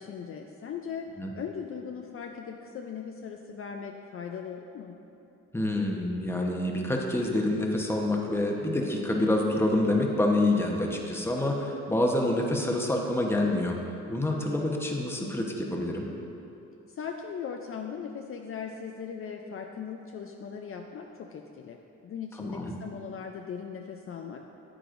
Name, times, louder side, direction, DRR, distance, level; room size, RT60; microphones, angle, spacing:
voice 1, 0.0-1.1 1.3-5.0 16.9-24.4, left 7 dB, 45° left, 2 dB, 0.5 m, -39 dB
voice 2, 5.5-13.8 14.1-16.1 22.4-22.7, left 1 dB, 10° left, 0 dB, 1.0 m, -27 dB
9.4 x 8.7 x 2.6 m, 2.8 s
cardioid pair, 90°, 30 cm